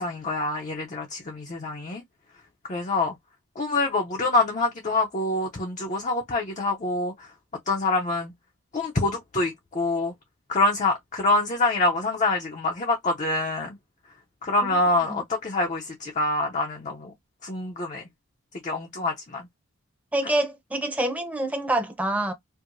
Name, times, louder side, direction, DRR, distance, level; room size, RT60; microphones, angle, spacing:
voice 1, 0.0-2.0 2.7-3.1 3.6-7.3 7.7-8.3 8.7-10.1 10.5-13.8 14.4-17.1 17.4-18.0 18.6-19.5, left 2 dB, 30° left, 0.5 m, -26 dB
voice 2, 20.1-22.3, right 1 dB, 5° right, 0.7 m, -26 dB
4.5 x 2.0 x 2.5 m
head